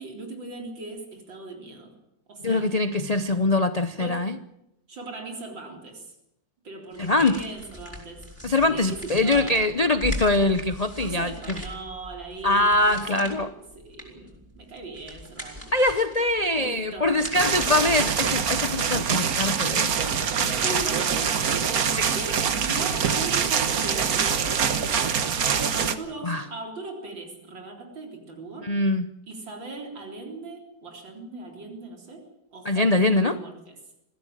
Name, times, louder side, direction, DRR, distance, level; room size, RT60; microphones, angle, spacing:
voice 1, 0.0-1.9 2.3-2.7 4.0-4.3 4.9-6.1 6.6-8.2 8.7-9.6 11.0-15.7 16.5-17.2 19.9-21.5 22.2-24.5 24.9-25.1 25.7-28.7 29.3-33.8, right 2 dB, 85° right, 1 dB, 4.6 m, -39 dB
voice 2, 2.4-4.4 7.0-7.4 8.4-11.6 12.4-13.5 15.7-20.0 21.8-22.1 26.2-26.5 28.6-29.1 32.6-33.4, left 2 dB, 85° left, 11 dB, 0.3 m, -23 dB
sound 1, 6.9-18.8, left 1 dB, 5° right, 5.1 m, -40 dB
sound 2, 17.3-26.0, right 7 dB, 55° right, 1.6 m, -24 dB
21.5 x 15.5 x 8.9 m, 0.86 s
omnidirectional pair, 2.0 m